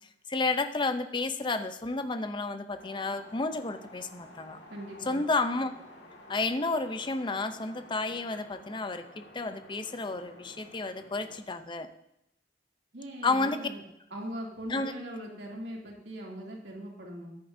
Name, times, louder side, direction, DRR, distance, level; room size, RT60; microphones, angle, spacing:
voice 1, 0.3-4.6 5.1-5.8 6.3-11.9 13.2-13.6 14.7-14.9, left 3 dB, 25° left, 9 dB, 0.6 m, -31 dB
sound 1, 2.7-11.4, left 1 dB, 70° left, 2.0 m, -52 dB
voice 2, 4.7-5.2 12.9-13.8 14.1-17.3, right 1 dB, 75° right, -2 dB, 2.7 m, -40 dB
13.5 x 10.0 x 2.7 m, 0.81 s
head